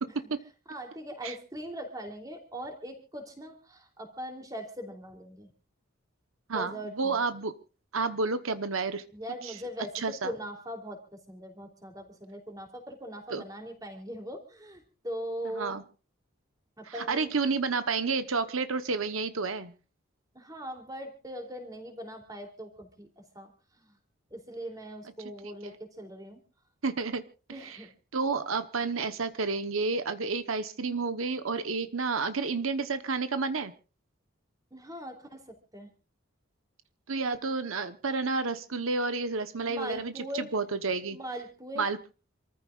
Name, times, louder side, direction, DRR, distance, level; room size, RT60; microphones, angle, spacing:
voice 1, 0.7-5.5 6.5-7.2 9.1-15.8 16.8-17.3 20.3-24.0 24.3-26.4 27.5-27.9 34.7-35.9 39.7-40.6 41.1-41.9, equal, 20° right, 4 dB, 3.2 m, -41 dB
voice 2, 6.5-7.5 7.9-9.0 9.4-9.5 10.0-10.3 13.3-13.4 15.5-15.8 17.1-19.7 25.6-25.7 26.8-27.2 27.6-27.8 28.1-33.7 37.1-41.2 41.8-42.0, right 4 dB, 90° right, 10 dB, 1.1 m, -30 dB
27.5 x 14.5 x 2.5 m, 0.34 s
head